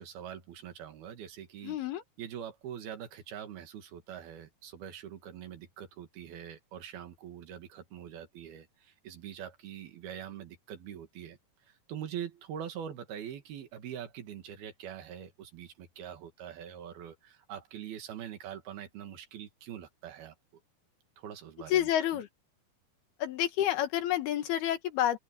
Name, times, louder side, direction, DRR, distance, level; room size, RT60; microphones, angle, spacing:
voice 1, 0.0-1.8 2.2-11.4 11.6-20.4 21.2-22.2, right 9 dB, 80° right, 3.9 m, -44 dB
voice 2, 1.6-2.0 21.7-22.3 23.2-25.2, left 12 dB, 85° left, 3.6 m, -29 dB
open air
omnidirectional pair, 4.3 m